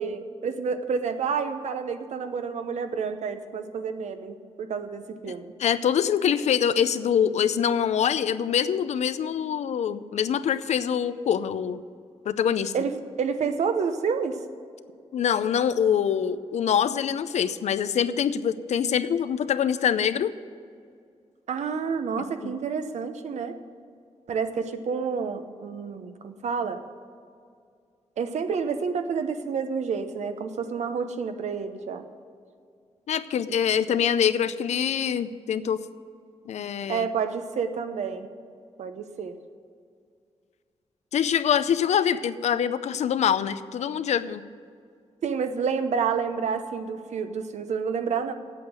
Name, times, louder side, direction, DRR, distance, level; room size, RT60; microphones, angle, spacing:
voice 1, 0.0-5.5 12.7-14.4 21.5-23.6 24.3-26.8 28.2-32.1 36.9-38.3 38.8-39.4 45.2-48.3, right 6 dB, 90° right, 8 dB, 0.8 m, -29 dB
voice 2, 5.6-11.8 12.3-12.7 15.1-20.3 22.4-22.5 33.1-35.8 36.5-37.1 41.1-44.4, left 8 dB, 90° left, 14 dB, 0.5 m, -24 dB
8.5 x 8.0 x 8.9 m, 2.2 s
wide cardioid pair, 130°, 11 cm